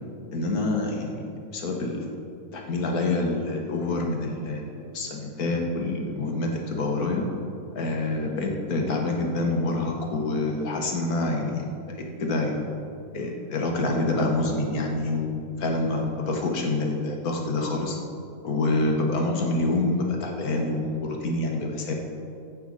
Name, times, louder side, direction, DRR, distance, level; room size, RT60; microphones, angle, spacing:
voice 1, 0.3-1.3 1.5-2.1 2.5-7.3 7.8-12.7 13.1-15.3 15.6-18.0 18.4-21.9, left 2 dB, 70° left, 1 dB, 1.8 m, -27 dB
14.5 x 8.6 x 4.1 m, 2.5 s
omnidirectional pair, 1.7 m